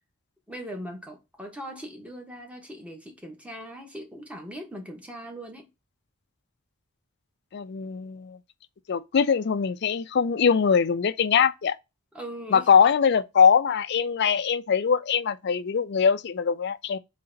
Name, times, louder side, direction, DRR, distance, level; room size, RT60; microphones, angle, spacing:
voice 1, 0.5-5.7 12.1-12.7, equal, 5° right, 1.2 m, -40 dB
voice 2, 7.5-8.4 8.9-11.8 12.5-17.0, left 6 dB, 50° left, 0.4 m, -22 dB
3.9 x 3.3 x 3.8 m
head